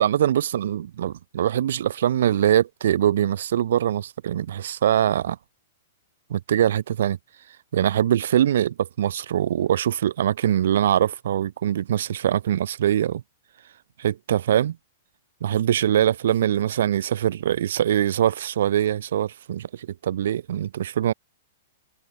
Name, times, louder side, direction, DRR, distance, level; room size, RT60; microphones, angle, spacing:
voice 1, 0.0-5.4 6.3-7.2 7.7-13.2 14.0-14.8 15.4-21.1, right 10 dB, 65° right, 0.3 m, -23 dB
hypercardioid pair, 115°, 0 cm